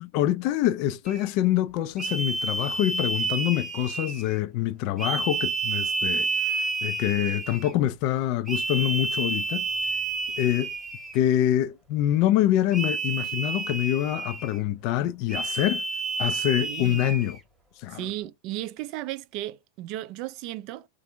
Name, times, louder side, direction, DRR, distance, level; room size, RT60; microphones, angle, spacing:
voice 1, 0.0-9.7 10.4-10.7 11.1-15.8 16.2-17.4 17.8-18.1, left 12 dB, 45° left, 0.3 m, -25 dB
sound 1, 1.1-1.3 2.0-4.4 5.0-7.7 8.5-11.3 12.7-14.6 15.3-17.4, right 3 dB, 10° right, 1.0 m, -30 dB
voice 2, 16.6-17.1 17.9-20.9, right 15 dB, 40° right, 0.3 m, -35 dB
3.3 x 2.5 x 2.7 m
figure-of-eight pair, 90°, 0 cm